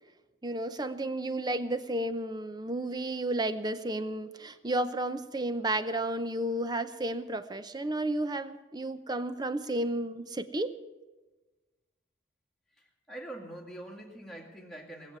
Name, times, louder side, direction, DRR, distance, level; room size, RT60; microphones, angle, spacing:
voice 1, 0.4-10.7, right 1 dB, 20° right, 12 dB, 0.6 m, -32 dB
voice 2, 12.8-15.2, right 1 dB, ahead, -1 dB, 2.1 m, -44 dB
19.5 x 7.6 x 9.6 m, 1.2 s
head